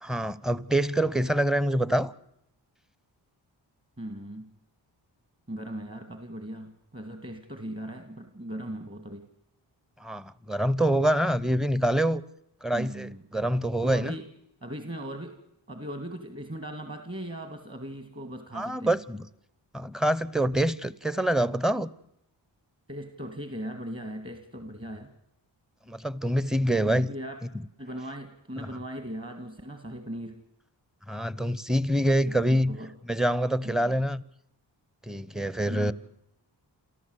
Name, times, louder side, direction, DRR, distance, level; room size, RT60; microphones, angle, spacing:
voice 1, 0.0-2.1 10.0-12.2 12.6-14.2 18.5-19.2 19.7-21.9 25.9-27.1 28.6-28.7 31.1-32.7 33.1-34.2 35.1-35.9, right 1 dB, ahead, 0.9 m, -26 dB
voice 2, 4.0-4.5 5.5-9.3 12.7-13.2 13.8-14.3 14.6-15.4 15.7-19.0 22.9-25.1 26.9-27.4 27.8-30.4 32.3-32.9 33.6-34.0 35.7-35.9, right 1 dB, 30° right, 2.5 m, -38 dB
28.0 x 14.0 x 8.2 m
cardioid pair, 50°, 45 cm